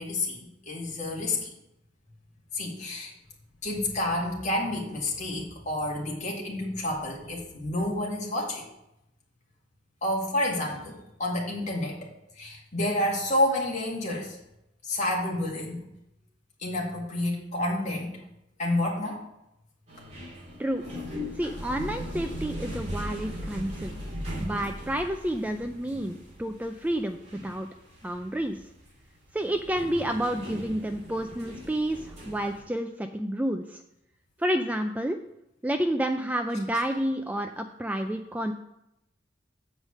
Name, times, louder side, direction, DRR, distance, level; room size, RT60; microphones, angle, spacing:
voice 1, 0.0-1.5 2.5-3.1 3.6-8.6 10.0-14.4 14.8-15.9 16.6-18.2 18.6-19.2 25.9-26.0 27.3-27.5, left 1 dB, 40° left, -2 dB, 2.1 m, -29 dB
sound 1, 19.9-32.6, equal, 35° right, 2.6 m, -39 dB
voice 2, 21.4-24.0 24.4-27.2 27.4-27.7 28.0-28.6 29.3-33.8 34.4-35.2 35.6-38.5, right 1 dB, 10° right, 6 dB, 0.3 m, -30 dB
8.1 x 4.9 x 6.4 m, 0.84 s
head